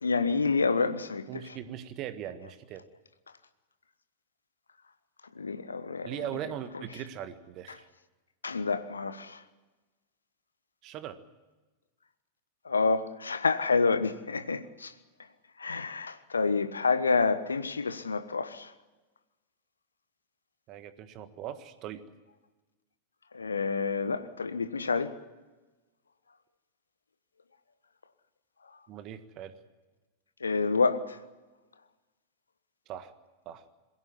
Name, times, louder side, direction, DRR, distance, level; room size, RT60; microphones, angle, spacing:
voice 1, 0.0-1.3 5.3-6.1 8.4-9.4 12.6-14.9 15.6-18.7 23.3-25.1 30.4-31.2, left 4 dB, 75° left, 1.2 m, -28 dB
voice 2, 1.3-2.9 6.0-7.9 10.8-11.2 20.7-22.0 28.9-29.6 32.9-33.1 33.5-33.6, right 10 dB, 40° right, 1.6 m, -40 dB
22.0 x 16.5 x 9.7 m
figure-of-eight pair, 90°, 0 cm